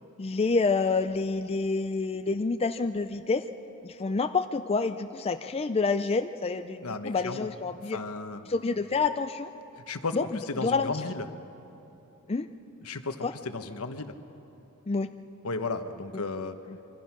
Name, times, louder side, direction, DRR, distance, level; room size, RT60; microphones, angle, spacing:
voice 1, 0.2-3.4 3.8-8.0 8.5-9.5 10.1-10.2 10.6-10.9 12.3-12.5 13.2-13.3 14.9-15.1 16.7-16.8, left 4 dB, 25° left, 8 dB, 0.5 m, -28 dB
voice 2, 6.8-7.5 7.8-8.4 9.9-11.3 12.8-14.1 15.4-16.6, left 3 dB, 75° left, 8 dB, 1.2 m, -34 dB
26.5 x 24.5 x 6.0 m, 3.0 s
head